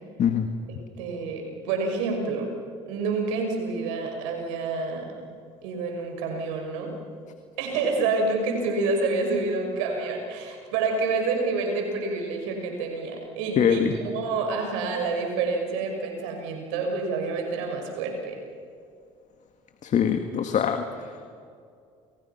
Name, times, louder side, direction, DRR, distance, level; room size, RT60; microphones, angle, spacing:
voice 1, 1.0-2.5 2.9-5.1 5.6-6.9 7.6-18.4, right 3 dB, 80° right, 3 dB, 6.1 m, -28 dB
voice 2, 13.6-13.9 19.8-20.8, left 8 dB, 50° left, 7 dB, 1.9 m, -22 dB
29.5 x 28.5 x 5.9 m, 2.4 s
hypercardioid pair, 65°, 16 cm